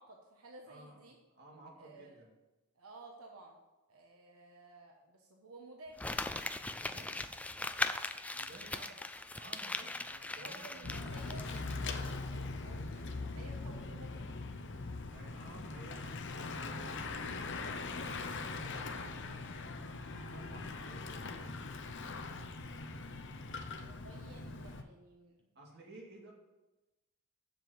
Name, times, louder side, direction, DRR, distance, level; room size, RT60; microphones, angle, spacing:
voice 1, 0.0-1.2 1.8-2.2 2.7-3.6 3.9-6.4 6.8-7.2 7.8-8.0 8.5-8.8 10.4-14.4 19.6-19.8 23.8-25.5, right 2 dB, 80° right, 1 dB, 1.2 m, -54 dB
voice 2, 0.7-1.0 1.3-2.3 6.7-7.3 8.3-8.9 9.4-11.1 15.1-19.7 20.1-21.6 25.5-26.3, right 1 dB, 50° right, -1 dB, 2.4 m, -56 dB
Crumpling crinkling, 6.0-11.7 12.0-12.1, left 2 dB, 5° left, 0.3 m, -39 dB
Bicycle / Mechanisms, 10.8-24.8, left 3 dB, 55° left, 0.8 m, -41 dB
7.6 x 7.0 x 7.7 m, 1.1 s
head